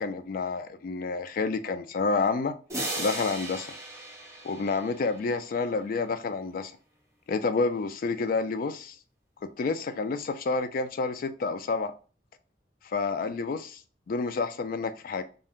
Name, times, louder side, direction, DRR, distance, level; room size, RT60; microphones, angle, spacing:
voice 1, 0.0-2.5 3.0-3.7 4.4-6.7 7.3-9.0 9.4-11.9 12.9-13.8 14.1-15.2, left 4 dB, 50° left, 0.3 m, -29 dB
sound 1, 2.7-5.4, right 1 dB, 15° right, 0.8 m, -36 dB
2.7 x 2.1 x 3.5 m
head